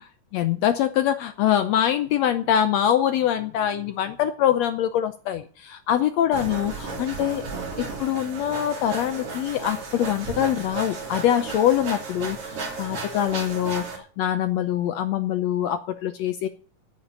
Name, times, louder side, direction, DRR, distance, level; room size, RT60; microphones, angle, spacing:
voice 1, 0.3-7.4 7.8-16.5, left 10 dB, 75° left, 10 dB, 1.6 m, -24 dB
sound 1, 6.3-14.0, right 3 dB, 45° right, 3.6 m, -34 dB
9.4 x 8.6 x 9.6 m, 0.43 s
omnidirectional pair, 3.7 m